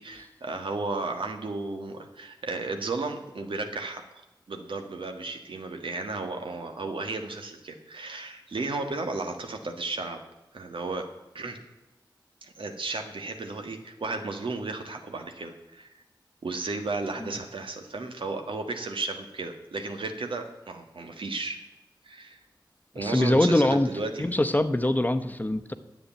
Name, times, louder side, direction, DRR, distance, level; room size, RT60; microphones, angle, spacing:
voice 1, 0.0-4.0 4.5-10.2 10.5-11.1 11.3-11.6 12.4-15.9 16.4-21.6 22.0-22.4 22.9-24.3, right 3 dB, 85° right, 5 dB, 1.5 m, -34 dB
voice 2, 23.0-23.9 24.2-25.7, left 1 dB, 20° left, 8 dB, 0.8 m, -23 dB
9.9 x 7.9 x 9.0 m, 0.99 s
wide cardioid pair, 80°, 9 cm